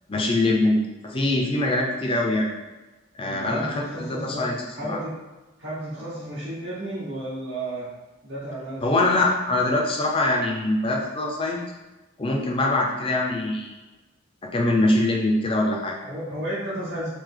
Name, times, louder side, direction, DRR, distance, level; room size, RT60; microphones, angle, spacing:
voice 1, 0.1-0.8 1.0-2.5 3.2-4.6 4.9-5.0 8.8-11.6 12.2-13.8 14.4-16.0, left 2 dB, 25° left, -1 dB, 0.5 m, -23 dB
voice 2, 3.2-4.5 4.7-5.2 5.6-7.9 8.2-9.0 16.0-17.1, right 1 dB, 50° right, -11 dB, 1.0 m, -32 dB
3.3 x 2.8 x 3.7 m, 1.1 s
head